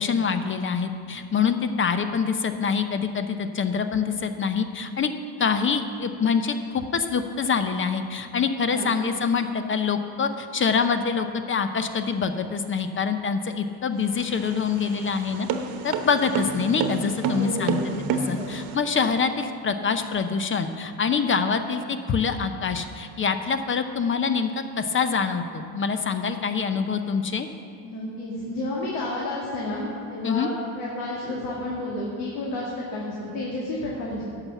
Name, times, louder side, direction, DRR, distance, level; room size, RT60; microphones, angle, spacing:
voice 1, 0.0-5.1 5.4-15.5 15.8-17.8 18.3-27.5 30.2-30.5, left 5 dB, 30° left, 9 dB, 0.7 m, -25 dB
sound 1, 14.0-18.8, right 5 dB, 60° right, 1.1 m, -29 dB
voice 2, 17.2-17.9 18.4-18.6 27.8-34.2, left 1 dB, 85° left, -5 dB, 2.0 m, -31 dB
11.0 x 5.8 x 7.2 m, 2.5 s
supercardioid pair, 90°, 41 cm